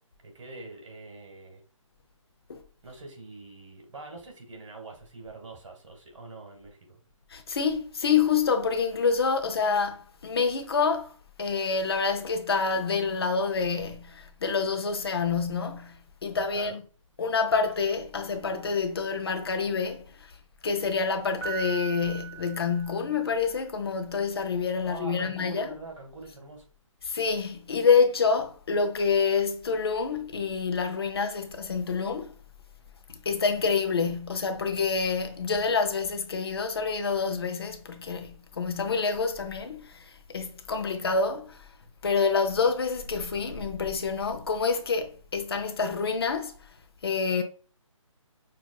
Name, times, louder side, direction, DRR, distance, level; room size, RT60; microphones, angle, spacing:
voice 1, 0.2-1.6 2.8-7.0 16.5-16.8 24.8-26.6, right 2 dB, 65° right, 1.6 m, -44 dB
voice 2, 7.3-11.1 11.4-16.8 17.2-20.0 20.6-25.7 27.0-32.3 33.1-41.6 42.0-46.5 47.0-47.4, left 5 dB, 50° left, 0.5 m, -27 dB
Piano, 21.4-23.5, right 9 dB, 15° left, 1.3 m, -39 dB
5.9 x 2.5 x 2.3 m
hypercardioid pair, 170°, 17 cm